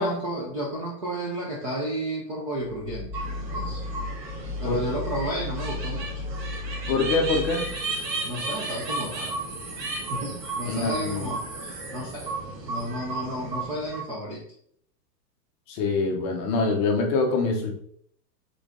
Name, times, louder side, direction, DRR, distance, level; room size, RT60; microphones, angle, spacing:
voice 1, 0.0-3.2 3.5-3.8 4.6-6.2 8.2-9.3 10.1-12.3 12.7-14.4, right 1 dB, 25° right, -4 dB, 0.3 m, -32 dB
sound 1, 2.6-8.0, left 3 dB, 45° left, 1.1 m, -35 dB
sound 2, 3.1-14.0, right 3 dB, 80° right, 1.5 m, -34 dB
voice 2, 6.9-7.6 10.6-11.3 15.7-17.7, left 3 dB, 25° left, 2 dB, 0.6 m, -25 dB
3.7 x 3.3 x 3.7 m, 0.65 s
hypercardioid pair, 150°, 49 cm